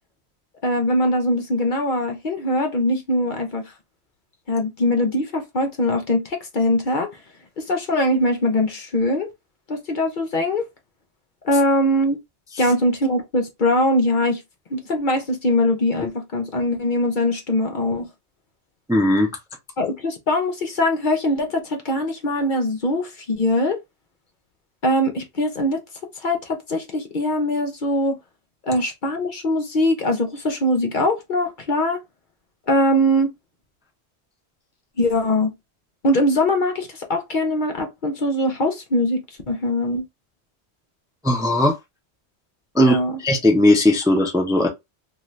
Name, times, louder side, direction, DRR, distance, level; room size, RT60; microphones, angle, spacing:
voice 1, 0.6-3.7 4.5-7.1 7.6-9.3 9.7-10.6 11.4-12.2 12.6-14.4 14.7-18.1 19.8-23.8 24.8-25.8 26.2-28.2 28.6-32.0 32.7-33.3 35.0-35.5 36.0-39.2 39.5-40.0 42.8-43.2, left 1 dB, 50° left, 0.8 m, -22 dB
voice 2, 18.9-19.3 41.2-41.8 42.7-44.7, left 1 dB, 5° right, 0.5 m, -18 dB
2.6 x 2.4 x 3.1 m
omnidirectional pair, 1.1 m